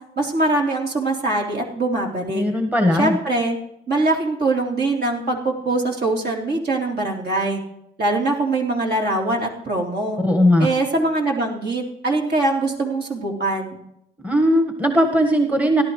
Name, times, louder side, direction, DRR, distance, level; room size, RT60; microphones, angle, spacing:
voice 1, 0.2-2.4 3.0-3.6 3.9-7.6 8.0-10.2 10.6-13.8, right 2 dB, 55° right, -1 dB, 3.4 m, -22 dB
voice 2, 2.3-3.2 10.2-10.7 14.2-15.8, equal, 10° right, 4 dB, 1.4 m, -18 dB
17.5 x 11.5 x 3.2 m, 0.76 s
cardioid pair, 90°, 20 cm